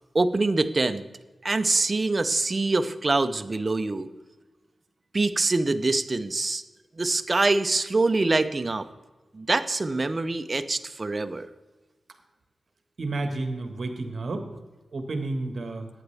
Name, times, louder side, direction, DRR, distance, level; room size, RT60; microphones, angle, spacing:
voice 1, 0.1-1.0 1.4-4.1 5.1-6.6 7.0-8.9 9.3-11.5, right 3 dB, 30° right, 10 dB, 0.6 m, -24 dB
voice 2, 13.0-14.5 14.9-15.9, right 2 dB, 55° right, 5 dB, 1.5 m, -31 dB
14.5 x 9.7 x 3.4 m, 1.2 s
wide cardioid pair, 140°, 0 cm